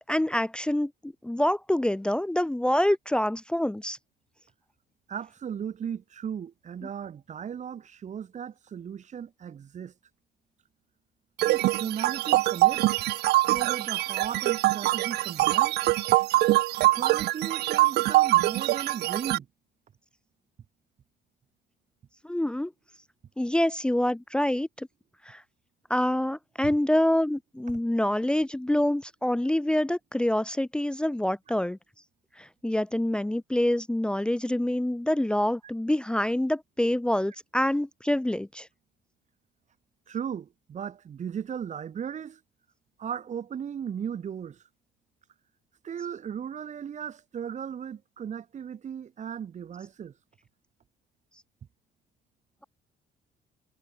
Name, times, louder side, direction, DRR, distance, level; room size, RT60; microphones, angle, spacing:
voice 1, 0.1-4.0 22.2-22.7 23.4-24.9 25.2-25.4 25.9-31.8 32.4-38.7, left 1 dB, 5° left, 0.9 m, -26 dB
voice 2, 5.1-9.9 11.5-12.8 13.4-15.8 16.8-19.5 40.1-42.4 43.0-44.6 45.8-50.1, right 8 dB, 45° right, 4.8 m, -36 dB
sound 1, 11.4-19.4, right 17 dB, 75° right, 0.8 m, -24 dB
cardioid pair, 110°, 17 cm